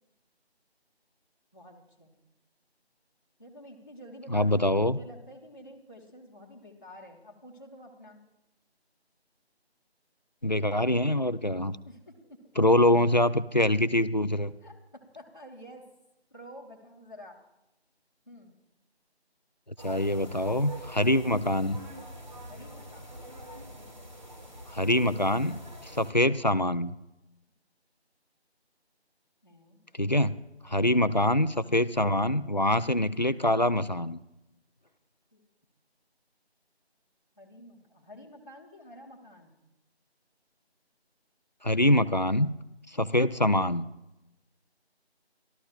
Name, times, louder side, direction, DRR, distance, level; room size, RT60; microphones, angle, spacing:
voice 1, 1.5-2.1 3.4-8.2 11.8-12.5 14.6-15.9 16.3-17.4 18.3-18.5 22.5-23.2 26.0-26.2 29.4-29.8 30.6-30.9 35.3-35.4 37.4-39.6, equal, 20° left, -6 dB, 1.4 m, -49 dB
voice 2, 4.3-5.0 10.4-11.8 12.6-14.5 19.8-21.8 24.7-26.9 30.0-30.3 30.6-34.2 41.6-42.5 42.9-43.9, left 1 dB, 45° left, 13 dB, 0.5 m, -24 dB
sound 1, 19.8-26.1, equal, 45° right, 2.3 m, -45 dB
28.5 x 13.0 x 2.4 m, 0.91 s
figure-of-eight pair, 175°, 33 cm